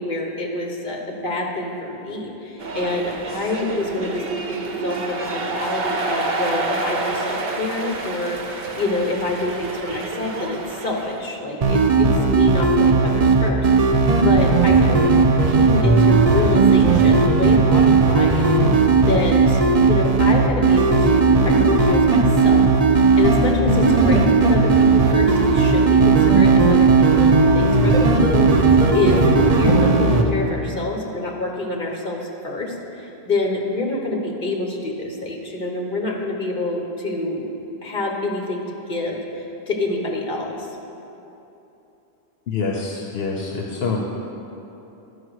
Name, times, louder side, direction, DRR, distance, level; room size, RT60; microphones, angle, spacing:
voice 1, 0.0-4.2 4.5-14.0 14.2-15.1 15.5-18.8 19.1-37.5 37.8-38.6 38.9-39.2 39.7-40.7, left 2 dB, 55° left, 1 dB, 1.3 m, -27 dB
sound 1, 2.6-11.4, right 3 dB, 70° right, 0.9 m, -28 dB
sound 2, 11.6-30.2, right 4 dB, 45° right, 0.6 m, -16 dB
voice 2, 42.5-44.0, left 4 dB, 75° left, 0 dB, 1.0 m, -26 dB
11.5 x 5.1 x 6.3 m, 3.0 s
omnidirectional pair, 1.1 m